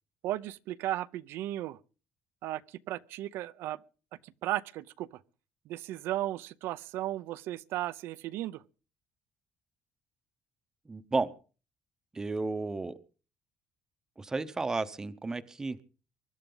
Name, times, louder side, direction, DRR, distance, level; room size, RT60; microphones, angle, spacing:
voice 1, 0.2-1.8 2.4-3.8 4.2-5.2 5.7-8.6, right 14 dB, 75° right, 0.7 m, -35 dB
voice 2, 10.9-11.3 12.1-12.9 14.2-15.8, right 3 dB, 15° right, 0.8 m, -32 dB
23.5 x 12.0 x 3.9 m
cardioid pair, 160°, 4 cm